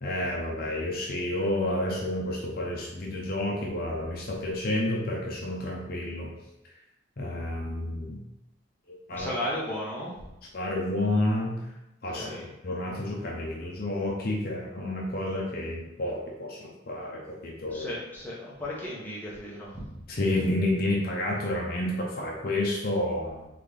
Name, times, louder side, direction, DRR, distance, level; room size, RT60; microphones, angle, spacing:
voice 1, 0.0-6.3 7.2-8.2 8.9-9.3 10.5-11.6 12.0-12.2 12.6-17.9 20.1-23.5, left 1 dB, 50° left, -2 dB, 0.7 m, -30 dB
voice 2, 9.1-10.2 12.1-12.5 17.7-20.0, left 1 dB, 10° left, -6 dB, 1.1 m, -35 dB
4.2 x 3.7 x 3.4 m, 0.92 s
head